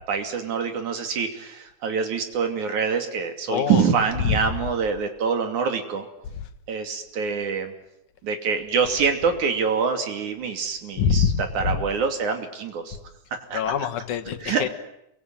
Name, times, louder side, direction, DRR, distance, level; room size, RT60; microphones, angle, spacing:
voice 1, 0.1-6.1 6.7-7.7 8.2-13.0 13.3-13.6 14.4-14.6, right 6 dB, 80° right, 6 dB, 4.1 m, -25 dB
voice 2, 3.5-3.8 4.2-4.4 11.0-11.8 13.5-14.7, left 7 dB, 85° left, 9 dB, 3.1 m, -24 dB
27.5 x 23.0 x 9.1 m, 0.82 s
omnidirectional pair, 3.4 m